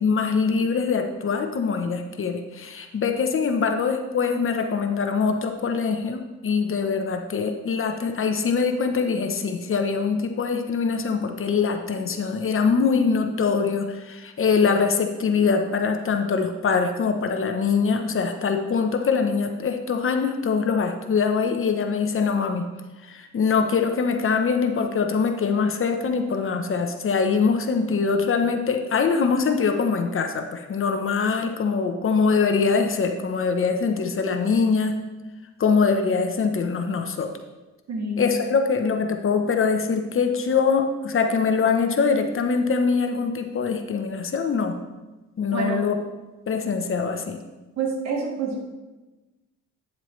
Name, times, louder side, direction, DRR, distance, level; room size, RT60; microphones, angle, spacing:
voice 1, 0.0-22.7 23.0-35.0 35.6-37.3 38.2-44.8 45.4-46.0 46.5-47.4, left 5 dB, 45° left, 5 dB, 0.9 m, -23 dB
voice 2, 37.9-38.3 45.5-45.9 47.8-48.6, right 3 dB, 60° right, 0 dB, 2.0 m, -27 dB
9.7 x 7.3 x 3.2 m, 1.1 s
cardioid pair, 90°, 30 cm